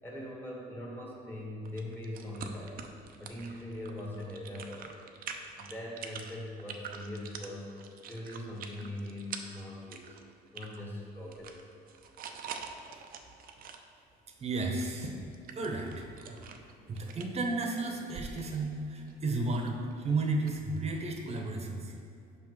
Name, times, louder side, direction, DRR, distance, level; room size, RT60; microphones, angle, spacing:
voice 1, 0.0-2.8 3.2-4.9 5.6-10.1 10.5-11.7, left 1 dB, 10° left, -3 dB, 1.7 m, -41 dB
sound 1, 1.7-10.8 11.1-13.8 14.7-20.8, right 6 dB, 60° right, 0.6 m, -46 dB
voice 2, 14.4-15.2 15.5-16.5 16.9-21.9, right 2 dB, 40° right, 2 dB, 1.0 m, -33 dB
5.9 x 5.7 x 4.8 m, 2.4 s
cardioid pair, 110°, 17 cm